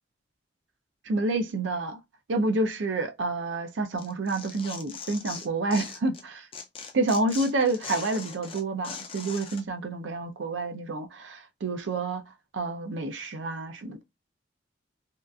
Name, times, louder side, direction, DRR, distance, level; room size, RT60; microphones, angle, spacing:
voice 1, 1.1-2.0 2.3-6.5 6.9-12.2 12.5-14.0, right 2 dB, 85° right, 0.5 m, -29 dB
Tearing, 4.0-6.2 6.5-9.6, left 5 dB, 30° left, 0.3 m, -40 dB
2.7 x 2.4 x 2.3 m
head